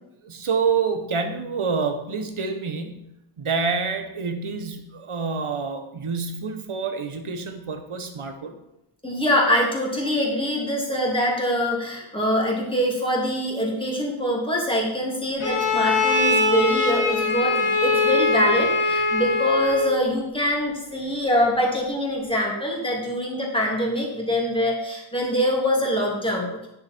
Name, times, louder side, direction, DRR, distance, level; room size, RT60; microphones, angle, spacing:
voice 1, 0.2-8.6, right 5 dB, 75° right, 7 dB, 1.2 m, -27 dB
voice 2, 9.0-26.7, equal, 10° left, -3 dB, 2.7 m, -24 dB
Bowed string instrument, 15.4-20.0, left 3 dB, 80° left, 1.5 m, -22 dB
9.9 x 6.6 x 4.5 m, 0.88 s
wide cardioid pair, 85°, 50 cm